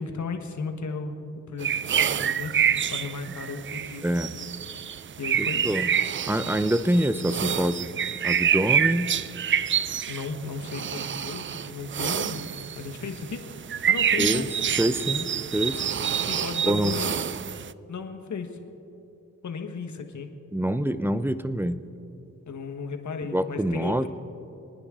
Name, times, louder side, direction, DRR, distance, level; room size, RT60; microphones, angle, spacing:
voice 1, 0.0-4.0 5.2-5.9 10.1-12.5 12.7-13.4 13.9-14.5 14.8-14.9 16.2-17.2 17.9-18.6 19.4-20.3 22.5-24.1, left 4 dB, 65° left, 6 dB, 1.5 m, -35 dB
sound 1, 1.6-17.7, right 8 dB, 40° right, 0.4 m, -27 dB
voice 2, 5.4-5.9 6.3-7.9 8.2-9.2 14.2-14.5 14.8-15.8 16.6-16.9 20.5-21.8 23.3-24.1, right 1 dB, 5° right, 13 dB, 0.7 m, -25 dB
26.5 x 9.7 x 3.8 m, 2.7 s
cardioid pair, 50°, 32 cm